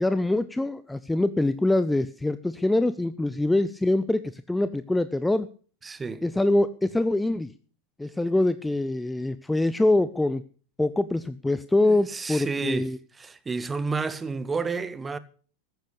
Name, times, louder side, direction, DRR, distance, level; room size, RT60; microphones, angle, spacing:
voice 1, 0.0-5.5 6.2-7.5 8.0-10.4 10.8-13.0, left 2 dB, 5° left, 0.6 m, -24 dB
voice 2, 5.8-6.2 11.9-15.2, right 4 dB, 15° right, 1.1 m, -31 dB
14.5 x 10.5 x 6.8 m
figure-of-eight pair, 90°, 0 cm